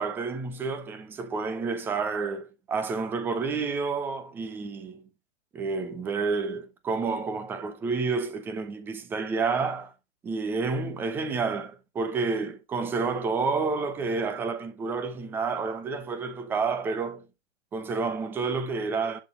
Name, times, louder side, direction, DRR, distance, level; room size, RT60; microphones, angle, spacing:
voice 1, 0.0-5.0 5.5-9.9 10.2-17.2 17.7-19.2, right 4 dB, 5° right, 0.5 m, -29 dB
11.0 x 4.0 x 4.9 m
hypercardioid pair, 130°, 38 cm